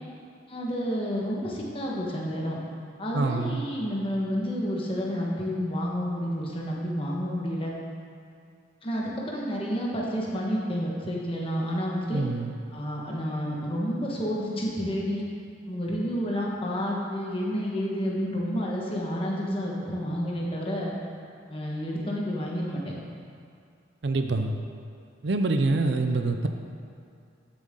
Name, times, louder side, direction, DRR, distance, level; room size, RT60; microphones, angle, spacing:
voice 1, 0.5-2.6 3.0-7.7 8.8-12.3 12.7-15.2 15.7-21.0 21.5-22.9, equal, 25° left, -3 dB, 1.5 m, -30 dB
voice 2, 3.1-3.6 12.1-12.5 24.0-24.6 25.2-26.5, right 3 dB, 60° right, 6 dB, 0.5 m, -25 dB
13.5 x 7.5 x 3.8 m, 2.3 s
head